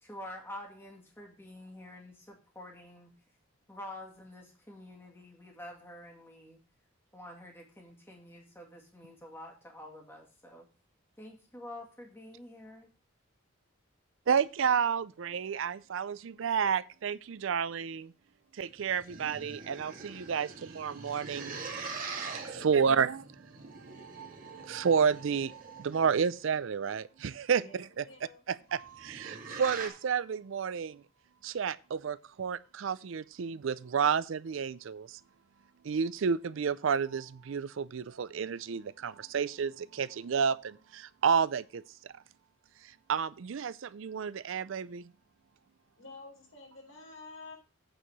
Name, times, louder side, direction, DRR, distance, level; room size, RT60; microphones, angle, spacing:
voice 1, 0.0-3.1 3.7-6.6 7.1-10.7 11.2-12.9, left 1 dB, 10° left, 2.3 m, -48 dB
voice 2, 14.3-18.1 18.6-21.6 21.9-23.2 23.5-28.0 28.5-31.0 31.4-35.2 35.8-42.1 43.1-45.0, right 6 dB, 65° right, 0.4 m, -31 dB
sound 1, 18.7-26.3 28.7-29.9, right 4 dB, 40° right, 2.2 m, -43 dB
voice 3, 22.5-23.1 27.6-27.8 28.0-28.4 46.0-47.5, left 3 dB, 70° left, 3.9 m, -50 dB
8.8 x 4.7 x 6.6 m
head